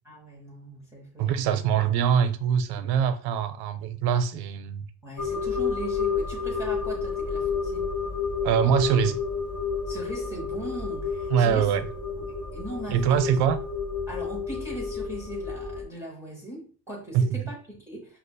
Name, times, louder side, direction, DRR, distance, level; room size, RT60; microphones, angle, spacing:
voice 1, 0.0-1.3 1.8-1.9 2.7-2.9 5.0-7.8 9.9-11.7 12.2-13.4 14.1-18.2, right 1 dB, 5° right, 0.8 m, -39 dB
voice 2, 1.2-4.9 8.4-9.2 11.3-11.9 12.9-13.6 17.1-17.4, right 8 dB, 55° right, 0.5 m, -23 dB
sound 1, 5.2-15.9, left 5 dB, 45° left, 1.0 m, -30 dB
5.1 x 2.4 x 2.2 m
supercardioid pair, 95°, 48 cm